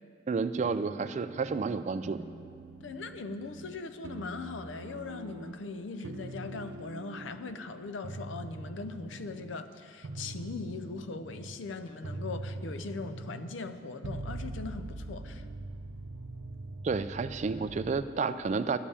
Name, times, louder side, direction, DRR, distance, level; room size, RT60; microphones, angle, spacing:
voice 1, 0.3-2.2 16.8-18.8, right 4 dB, 35° right, 12 dB, 0.3 m, -31 dB
sound 1, 0.6-1.8 2.0-5.7 6.0-7.6 8.0-9.6 10.0-18.2, right 2 dB, 85° right, 0.6 m, -43 dB
voice 2, 2.8-15.5, left 3 dB, 75° left, 11 dB, 0.5 m, -40 dB
11.0 x 5.4 x 8.4 m, 2.3 s
head